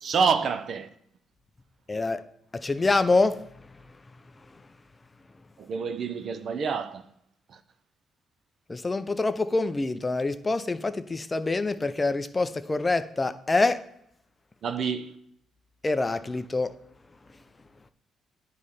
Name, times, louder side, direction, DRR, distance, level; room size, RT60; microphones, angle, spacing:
voice 1, 0.0-0.9 5.6-7.1 7.5-7.6 14.6-15.1, right 5 dB, 60° right, 0.6 m, -27 dB
voice 2, 1.9-2.2 2.5-3.4 8.7-13.8 15.8-16.7, left 3 dB, 25° left, 0.5 m, -26 dB
9.5 x 3.2 x 5.3 m
cardioid pair, 90°, 0 cm